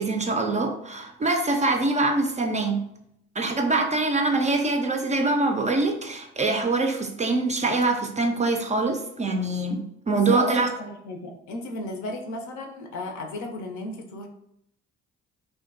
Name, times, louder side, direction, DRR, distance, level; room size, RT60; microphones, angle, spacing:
voice 1, 0.0-2.8 3.4-9.8 10.1-10.7, right 3 dB, 25° right, 3 dB, 0.4 m, -24 dB
voice 2, 10.1-14.3, left 2 dB, 65° left, 3 dB, 0.5 m, -34 dB
2.6 x 2.2 x 2.5 m, 0.76 s
hypercardioid pair, 45°, 32 cm